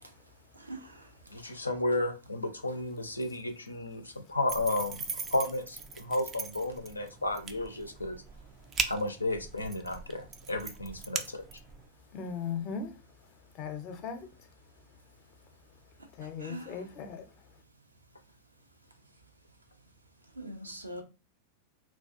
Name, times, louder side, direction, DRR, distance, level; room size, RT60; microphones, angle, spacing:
voice 1, 0.5-1.1 1.4-1.5 16.2-16.9 20.4-21.0, right 1 dB, 80° right, 0.5 m, -43 dB
voice 2, 1.3-5.0 5.3-8.2 8.9-11.4, left 2 dB, 80° left, 0.4 m, -33 dB
sound 1, 4.5-11.9, right 5 dB, 25° right, 0.3 m, -40 dB
voice 3, 12.1-12.9 13.6-14.3 16.2-17.2, left 6 dB, 40° left, 0.6 m, -37 dB
2.3 x 2.3 x 2.5 m
figure-of-eight pair, 90°, 0 cm